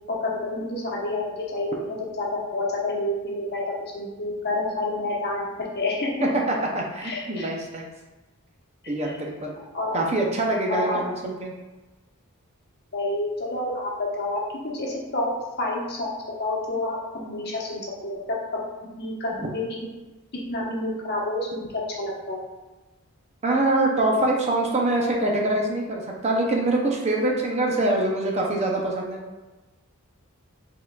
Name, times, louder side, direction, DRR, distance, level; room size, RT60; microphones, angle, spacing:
voice 1, 0.1-5.5 5.7-6.3 7.0-7.5 9.0-9.1 9.7-10.0 10.7-11.0 12.9-15.3 15.6-16.1 16.4-18.6 19.0-19.8 20.5-22.4, left 2 dB, 50° left, -3 dB, 1.0 m, -29 dB
voice 2, 6.5-7.9 8.9-9.6 9.9-11.5 23.4-29.2, right 2 dB, 30° right, 0 dB, 0.5 m, -24 dB
4.5 x 3.7 x 2.3 m, 1.1 s
head